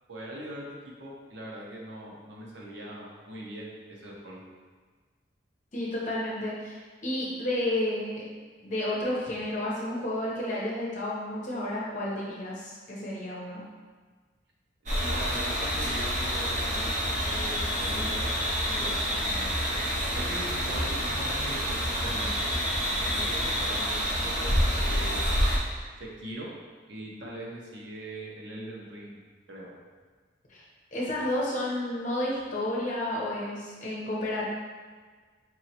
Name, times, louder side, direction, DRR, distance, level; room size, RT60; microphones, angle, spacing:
voice 1, 0.1-4.4 15.0-18.3 18.7-19.6 20.1-22.5 23.0-25.4 26.2-26.5 26.9-29.2 29.5-29.7, right 1 dB, 75° right, -3 dB, 0.8 m, -41 dB
voice 2, 5.7-8.2 8.6-13.6 30.5-30.6 30.9-34.4, left 1 dB, 40° left, -5 dB, 0.9 m, -31 dB
sound 1, 14.9-25.6, equal, 40° right, 0.8 m, -28 dB
4.5 x 3.1 x 2.9 m, 1.5 s
head